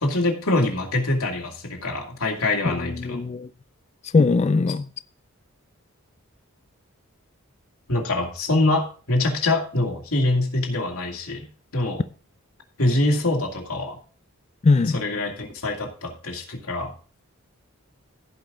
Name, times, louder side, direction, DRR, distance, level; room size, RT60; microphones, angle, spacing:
voice 1, 0.0-3.2 7.9-11.5 11.7-12.0 12.8-14.0 14.9-16.9, left 2 dB, 75° left, 2.4 m, -24 dB
voice 2, 2.6-3.5 4.1-4.9 14.6-15.0, left 3 dB, 30° left, 0.3 m, -20 dB
15.5 x 5.4 x 3.8 m
head